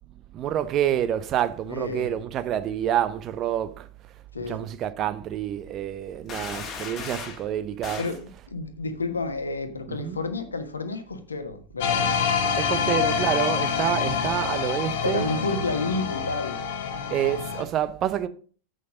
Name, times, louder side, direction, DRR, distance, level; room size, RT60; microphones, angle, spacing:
voice 1, 0.3-3.9 4.4-8.5 9.9-10.2 12.6-15.4 17.1-18.3, right 10 dB, 30° right, 0.8 m, -28 dB
voice 2, 1.7-2.1 4.3-4.7 8.0-8.2 8.5-12.2 12.4-12.9 13.4-13.6 15.0-16.6, left 3 dB, 75° left, 1.3 m, -30 dB
sound 1, 6.3-7.4 7.8-8.2, left 5 dB, 25° left, 1.7 m, -36 dB
sound 2, 11.8-17.6, left 6 dB, 55° left, 1.2 m, -26 dB
8.1 x 6.4 x 5.0 m
figure-of-eight pair, 90°, 0 cm